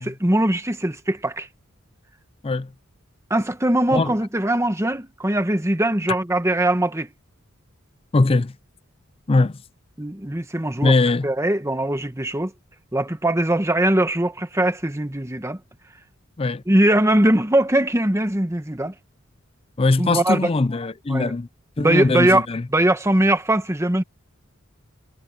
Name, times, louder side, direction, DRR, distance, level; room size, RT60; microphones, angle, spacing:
voice 1, 0.1-1.5 3.3-7.1 10.0-10.9 11.2-12.5 12.9-15.6 16.7-18.9 20.0-20.5 21.1-21.3 21.8-22.4 22.7-24.0, right 1 dB, 15° right, 1.3 m, -21 dB
voice 2, 8.1-8.5 9.3-9.6 10.8-11.3 16.4-16.6 19.8-21.5 21.8-22.7, left 3 dB, 25° left, 0.5 m, -20 dB
head